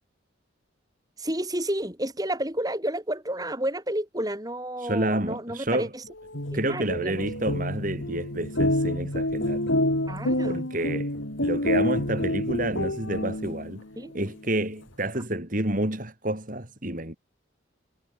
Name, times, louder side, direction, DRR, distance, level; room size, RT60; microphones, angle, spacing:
voice 1, 1.2-6.0 6.5-7.3 10.1-10.7 14.0-14.1, right 1 dB, 20° right, 5.5 m, -31 dB
voice 2, 4.8-5.9 6.5-9.6 10.4-11.1 11.4-13.8 14.1-17.2, right 1 dB, 40° right, 3.7 m, -29 dB
sound 1, 6.2-13.8, left 1 dB, 75° left, 5.2 m, -28 dB
head